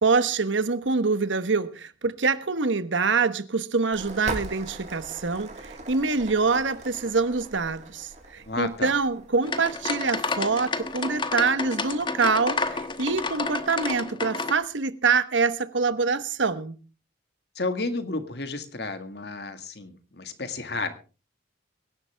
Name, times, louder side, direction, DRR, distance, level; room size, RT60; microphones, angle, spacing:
voice 1, 0.0-16.8, right 4 dB, 80° right, 1.2 m, -25 dB
sound 1, 3.9-14.0, right 2 dB, 35° right, 2.6 m, -42 dB
voice 2, 8.5-8.9 17.6-20.9, left 3 dB, 60° left, 1.9 m, -32 dB
sound 2, 9.4-14.5, left 3 dB, 25° left, 1.1 m, -30 dB
23.5 x 11.0 x 3.5 m
head